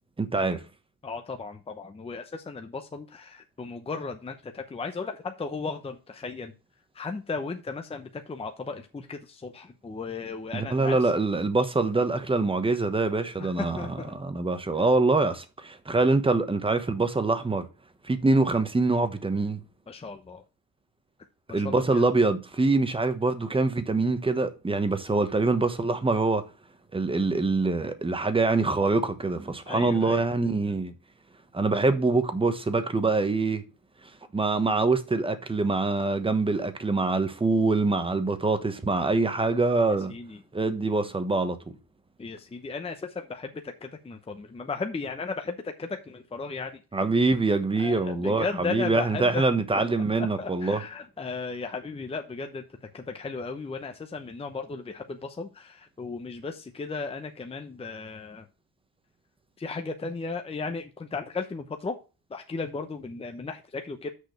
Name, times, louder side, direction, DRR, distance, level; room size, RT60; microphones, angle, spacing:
voice 1, 0.2-0.6 10.5-17.7 18.0-19.6 21.5-26.4 26.9-30.9 31.5-33.6 34.3-40.1 40.5-41.6 46.9-50.8, right 3 dB, 15° right, 1.2 m, -24 dB
voice 2, 1.0-6.5 6.9-11.1 13.4-14.2 19.9-20.4 21.5-22.0 29.7-30.3 40.1-40.4 42.2-46.8 47.8-49.4 49.7-49.8 50.2-52.6 52.9-58.4 59.6-62.0 62.3-64.1, left 4 dB, 15° left, 0.8 m, -35 dB
6.5 x 5.0 x 6.6 m
cardioid pair, 115°, 35 cm